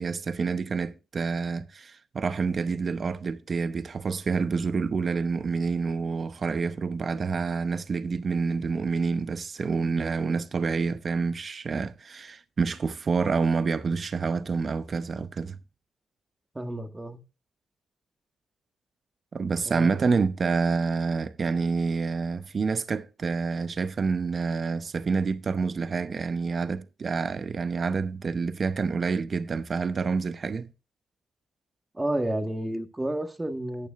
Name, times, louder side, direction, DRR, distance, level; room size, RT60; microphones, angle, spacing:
voice 1, 0.0-15.6 19.3-30.7, right 4 dB, 50° right, 0.8 m, -28 dB
voice 2, 16.6-17.2 19.7-20.1 31.9-33.9, right 1 dB, 20° right, 1.7 m, -31 dB
13.5 x 9.2 x 2.5 m
supercardioid pair, 60°, 0 cm